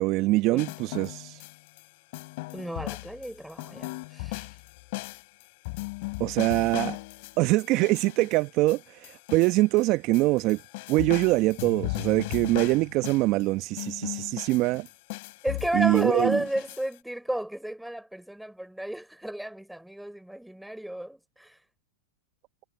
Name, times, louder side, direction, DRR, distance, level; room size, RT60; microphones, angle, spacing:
voice 1, 0.0-1.4 6.2-7.0 7.4-10.6 10.9-14.9 15.7-16.4, right 20 dB, 45° right, 0.9 m, -24 dB
sound 1, 0.6-1.8 2.1-9.9 10.1-13.4 13.8-16.9, left 24 dB, 55° left, 2.9 m, -37 dB
voice 2, 2.5-4.5 15.4-21.6, right 1 dB, ahead, 3.6 m, -32 dB
hypercardioid pair, 110°, 0 cm